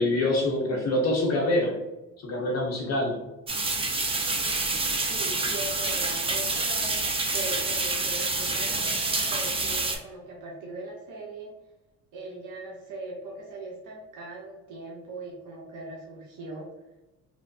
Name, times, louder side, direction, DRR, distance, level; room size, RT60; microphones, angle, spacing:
voice 1, 0.0-1.8 2.2-3.2, left 1 dB, 45° left, -1 dB, 0.7 m, -25 dB
sound 1, 3.5-10.0, right 3 dB, 15° right, 0.4 m, -27 dB
voice 2, 5.1-11.5 12.1-16.7, right 2 dB, 55° right, -2 dB, 0.7 m, -40 dB
2.9 x 2.0 x 2.6 m, 1.0 s
supercardioid pair, 70°, 37 cm